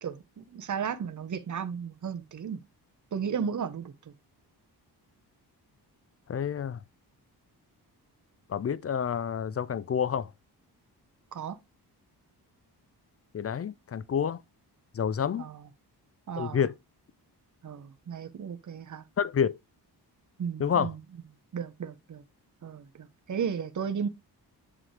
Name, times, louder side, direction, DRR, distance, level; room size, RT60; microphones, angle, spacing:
voice 1, 0.0-2.6 3.1-4.1 11.3-11.6 15.4-15.6 16.3-16.6 17.6-19.0 20.4-21.0 21.5-22.2 22.6-24.1, right 7 dB, 45° right, 1.0 m, -34 dB
voice 2, 6.3-6.8 8.5-10.3 13.3-14.4 14.9-15.5 16.4-16.7 19.2-19.6 20.6-20.9, left 7 dB, 35° left, 0.5 m, -28 dB
7.5 x 4.9 x 3.3 m
cardioid pair, 95°, 41 cm